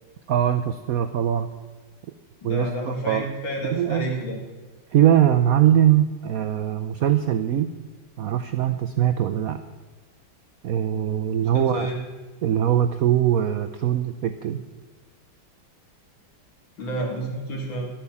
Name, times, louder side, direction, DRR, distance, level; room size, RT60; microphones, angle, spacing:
voice 1, 0.3-1.5 2.4-3.3 3.7-4.1 4.9-7.7 8.2-9.6 10.6-11.9 12.4-14.6, right 10 dB, 90° right, 9 dB, 0.7 m, -21 dB
voice 2, 2.4-4.4 11.4-12.0 16.8-17.9, right 1 dB, 65° left, -1 dB, 3.4 m, -30 dB
12.0 x 8.8 x 7.0 m, 1.3 s
omnidirectional pair, 2.2 m